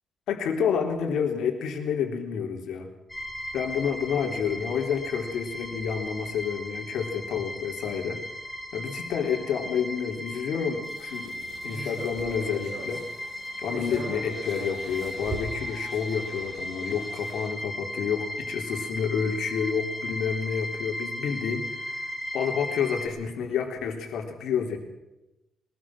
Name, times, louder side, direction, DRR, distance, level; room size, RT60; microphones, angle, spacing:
voice 1, 0.3-2.9 3.5-8.2 8.7-11.4 11.6-13.0 13.6-24.8, left 7 dB, 85° left, 3 dB, 3.5 m, -29 dB
sound 1, 3.1-23.1, left 1 dB, 5° left, 4.4 m, -36 dB
sound 2, 10.8-17.5, right 3 dB, 50° right, 7.7 m, -41 dB
22.5 x 20.0 x 6.0 m, 0.97 s
cardioid pair, 145°, 0 cm